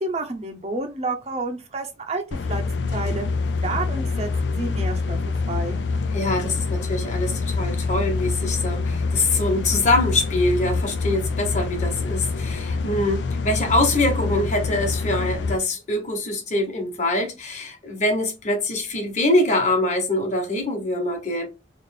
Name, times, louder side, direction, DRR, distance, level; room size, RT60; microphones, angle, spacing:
voice 1, 0.0-2.2 2.5-3.3 3.6-5.8, right 2 dB, 35° right, 0.7 m, -30 dB
sound 1, 2.3-15.6, left 4 dB, 75° left, 0.4 m, -26 dB
voice 2, 6.1-21.5, left 2 dB, 40° left, 1.1 m, -24 dB
3.2 x 2.5 x 3.8 m
head